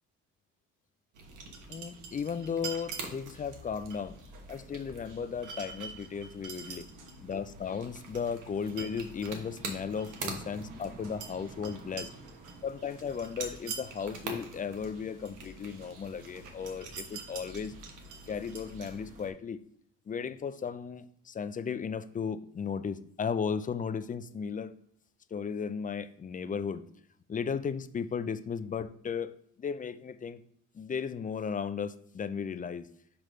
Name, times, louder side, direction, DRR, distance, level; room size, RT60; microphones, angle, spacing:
sound 1, 1.1-19.3, right 4 dB, 90° right, 1.2 m, -44 dB
voice 1, 1.7-4.2 4.5-6.9 7.2-12.1 12.6-17.7 18.3-19.6 20.1-24.8 25.3-26.8 27.3-30.4 30.7-32.9, left 6 dB, 25° left, 12 dB, 0.4 m, -35 dB
6.0 x 3.2 x 5.0 m, 0.67 s
cardioid pair, 90°, 30 cm